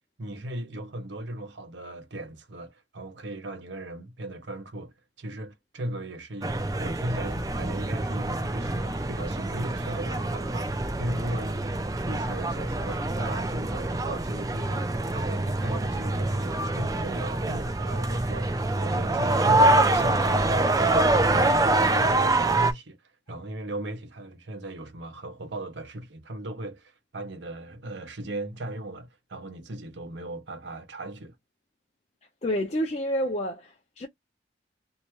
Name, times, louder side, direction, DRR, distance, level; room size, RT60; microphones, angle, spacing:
voice 1, 0.2-11.8 12.1-18.5 18.8-23.0 23.3-31.4, right 1 dB, 80° right, 0.8 m, -37 dB
sound 1, 6.4-22.7, right 2 dB, 20° right, 0.4 m, -25 dB
voice 2, 32.4-34.1, equal, 40° left, 0.5 m, -29 dB
2.7 x 2.1 x 3.0 m
head